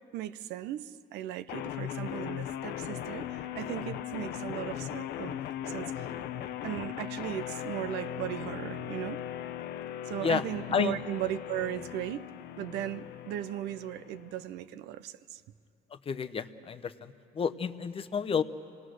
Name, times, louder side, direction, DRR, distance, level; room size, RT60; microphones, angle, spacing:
voice 1, 0.1-5.4 5.7-6.1 6.6-9.2 10.1-12.3 12.6-15.4, right 12 dB, 85° right, 13 dB, 0.6 m, -37 dB
sound 1, 1.5-14.5, left 10 dB, 75° left, 0.7 m, -38 dB
voice 2, 16.1-18.4, left 6 dB, 35° left, 10 dB, 0.7 m, -30 dB
27.5 x 18.5 x 6.3 m, 2.7 s
cardioid pair, 110°, 17 cm